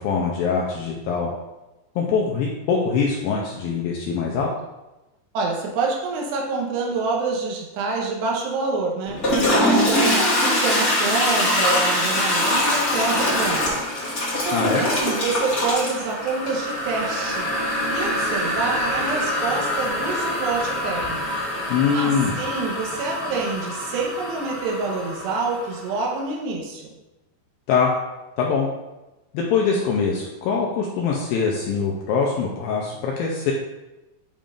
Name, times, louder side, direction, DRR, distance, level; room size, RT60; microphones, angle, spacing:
voice 1, 0.0-1.3 2.0-4.5 14.5-14.8 21.7-22.4 27.7-27.9 28.4-28.7 29.3-33.5, left 5 dB, 80° left, -2 dB, 2.2 m, -23 dB
voice 2, 5.3-9.2 9.6-13.8 14.4-17.5 17.9-21.4 21.9-26.9, right 4 dB, 85° right, -1 dB, 3.2 m, -27 dB
Toilet flush, 9.1-25.8, left 1 dB, 50° left, 1.0 m, -24 dB
8.8 x 5.3 x 2.5 m, 1.0 s
omnidirectional pair, 4.8 m